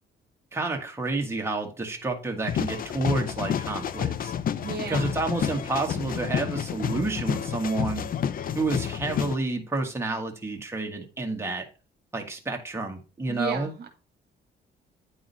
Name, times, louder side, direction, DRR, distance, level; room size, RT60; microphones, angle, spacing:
voice 1, 0.5-4.3 4.9-8.1 8.5-11.6 12.1-13.7, right 3 dB, 10° right, 2 dB, 1.5 m, -30 dB
sound 1, 1.3-10.7 11.1-11.2, right 1 dB, 30° right, 1.3 m, -53 dB
sound 2, 2.5-9.4, left 8 dB, 45° left, 0.4 m, -30 dB
voice 2, 4.6-5.1 13.3-13.9, right 5 dB, 55° right, 5 dB, 1.3 m, -33 dB
9.3 x 3.6 x 4.1 m, 0.33 s
cardioid pair, 90°, 20 cm